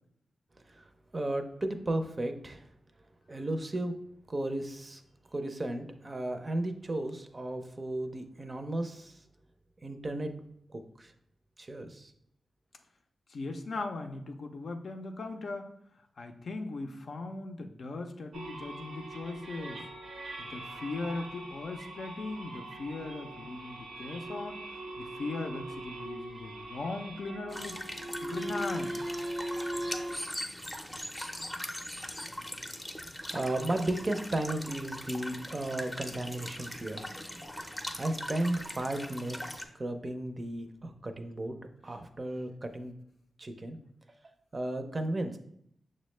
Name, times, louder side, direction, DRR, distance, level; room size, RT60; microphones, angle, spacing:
voice 1, 1.1-2.7 3.3-3.9 4.3-5.0 5.3-9.2 9.8-10.3 10.7-11.1 11.6-12.1 33.3-37.1 37.6-41.6 41.8-42.9 43.4-43.8 44.5-45.4, right 1 dB, 40° right, 7 dB, 0.5 m, -34 dB
voice 2, 13.3-15.7 16.2-19.8 20.4-24.6 25.0-27.8 28.2-28.9, left 3 dB, 70° left, 5 dB, 0.4 m, -38 dB
sound 1, 18.3-30.2, right 1 dB, 85° right, 0.6 m, -40 dB
sound 2, 27.5-39.6, left 1 dB, 10° left, 0.5 m, -41 dB
6.2 x 2.1 x 3.1 m, 0.72 s
cardioid pair, 55°, 0 cm